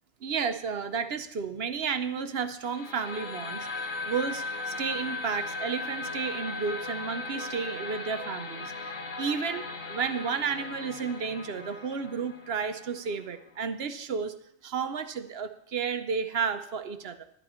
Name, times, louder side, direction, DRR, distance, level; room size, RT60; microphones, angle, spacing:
voice 1, 0.2-3.7 4.1-8.7 9.2-14.3 14.6-17.2, right 6 dB, 55° right, 9 dB, 0.9 m, -32 dB
sound 1, 2.6-13.6, left 3 dB, 75° left, 1.5 m, -40 dB
sound 2, 3.0-9.4, left 2 dB, 35° left, 0.9 m, -39 dB
12.0 x 11.0 x 4.3 m, 0.74 s
omnidirectional pair, 1.4 m